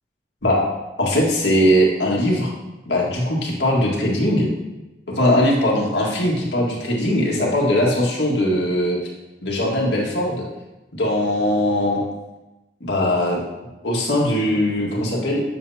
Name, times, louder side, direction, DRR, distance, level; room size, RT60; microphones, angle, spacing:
voice 1, 1.0-2.5 2.8-4.5 5.2-9.0 9.4-10.4 10.9-12.0 12.8-13.4 13.8-15.4, left 1 dB, 90° left, -3 dB, 1.8 m, -20 dB
7.8 x 6.8 x 2.8 m, 1.0 s
head